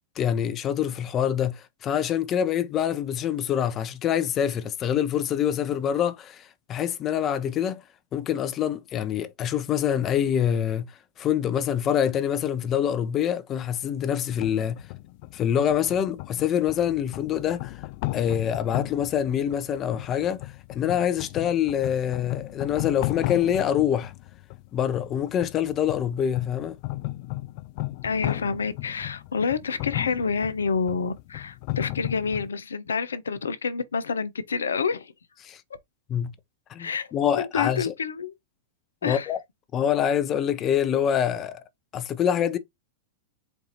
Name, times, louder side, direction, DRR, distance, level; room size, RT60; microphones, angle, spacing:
voice 1, 0.2-7.8 8.1-10.9 11.2-14.8 15.3-17.8 18.1-24.1 24.7-26.8 35.4-35.6 36.1-36.3 36.7-37.9 39.0-39.4 39.7-41.6 41.9-42.6, left 9 dB, 35° left, 0.7 m, -25 dB
sound 1, 14.3-32.5, left 19 dB, 55° left, 0.3 m, -36 dB
voice 2, 28.0-35.1 36.8-37.1 37.4-38.3 39.0-39.3, left 5 dB, 90° left, 0.6 m, -28 dB
4.6 x 2.6 x 4.0 m
hypercardioid pair, 105°, 0 cm